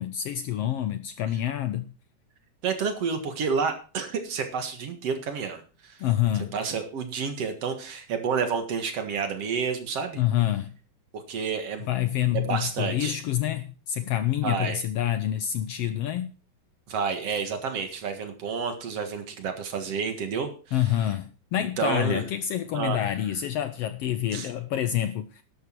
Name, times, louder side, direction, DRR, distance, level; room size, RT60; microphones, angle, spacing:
voice 1, 0.0-1.9 6.0-6.6 10.1-10.7 11.9-16.3 20.7-25.4, left 11 dB, 70° left, 1.5 m, -27 dB
voice 2, 2.6-6.0 6.3-10.2 11.1-11.9 12.3-13.2 14.4-14.8 16.9-20.9 21.8-22.2 22.7-23.0 24.3-24.5, right 6 dB, 60° right, 2.7 m, -30 dB
12.0 x 11.5 x 4.6 m
omnidirectional pair, 3.3 m